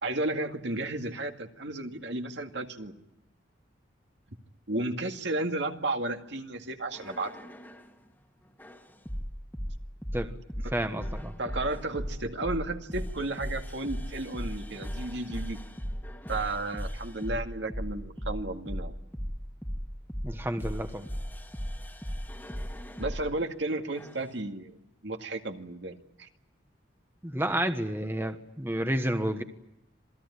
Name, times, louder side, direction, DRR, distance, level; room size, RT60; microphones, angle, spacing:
voice 1, 0.0-2.9 4.7-7.3 10.6-10.7 11.4-15.6 16.3-18.9 23.0-26.3, right 2 dB, 65° right, 5 dB, 2.2 m, -33 dB
sound 1, 6.9-7.9 8.6-23.3 23.9-24.3, equal, 10° left, 1.9 m, -37 dB
voice 2, 10.7-11.3 20.2-21.1 27.2-29.4, right 1 dB, 10° right, 7 dB, 1.3 m, -30 dB
27.0 x 18.0 x 9.8 m, 0.85 s
head